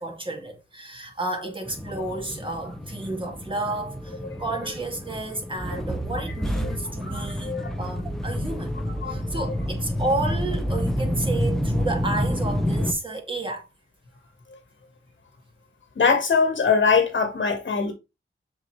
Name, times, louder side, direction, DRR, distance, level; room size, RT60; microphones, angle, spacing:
voice 1, 0.0-8.7 9.1-13.7, right 2 dB, 25° right, 2.2 m, -31 dB
sound 1, 1.6-12.9, equal, ahead, 0.9 m, -29 dB
voice 2, 7.0-7.7 8.8-9.4 15.9-17.9, left 5 dB, 65° left, 1.5 m, -23 dB
6.6 x 4.6 x 3.2 m
cardioid pair, 75°, 21 cm